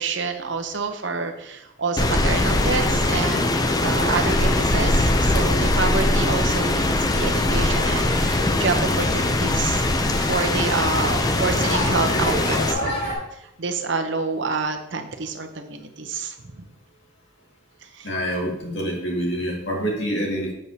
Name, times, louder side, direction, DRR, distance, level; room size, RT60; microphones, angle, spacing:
voice 1, 0.0-9.8 10.2-12.9 13.6-16.6 17.9-18.1, right 4 dB, 70° right, 5 dB, 0.8 m, -28 dB
Rain, 2.0-12.7, left 2 dB, 20° left, 0.4 m, -21 dB
sound 1, 7.6-13.1, equal, 55° left, 2.5 m, -30 dB
voice 2, 18.0-20.5, equal, 75° left, -2 dB, 2.0 m, -26 dB
7.5 x 6.6 x 2.8 m, 0.85 s
head